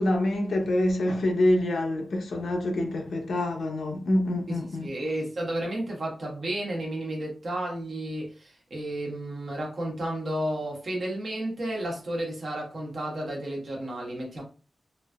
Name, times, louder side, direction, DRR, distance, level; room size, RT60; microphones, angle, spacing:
voice 1, 0.0-4.9, left 1 dB, 85° left, 0.7 m, -26 dB
voice 2, 4.5-14.4, right 1 dB, 60° right, 1.2 m, -32 dB
3.1 x 2.6 x 2.3 m
wide cardioid pair, 120°, 0 cm